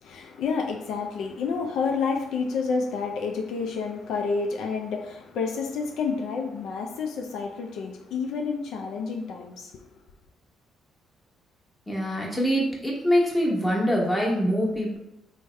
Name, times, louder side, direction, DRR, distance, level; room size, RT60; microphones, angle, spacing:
voice 1, 0.0-9.8, left 5 dB, 75° left, 2 dB, 0.3 m, -29 dB
voice 2, 11.9-15.0, equal, 10° left, -3 dB, 1.1 m, -24 dB
3.3 x 2.1 x 3.3 m, 0.87 s
supercardioid pair, 60°, 0 cm